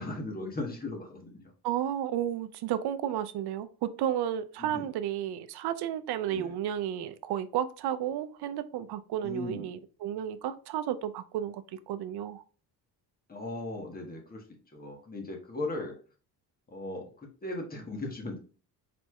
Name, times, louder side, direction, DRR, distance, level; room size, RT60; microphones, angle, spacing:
voice 1, 0.0-1.4 4.6-4.9 6.3-6.5 9.2-9.7 13.3-14.4 14.7-15.9 16.7-18.4, left 2 dB, 20° left, 1.2 m, -37 dB
voice 2, 1.6-12.4, right 10 dB, 70° right, 0.6 m, -32 dB
4.5 x 4.1 x 2.3 m
cardioid pair, 115°, 41 cm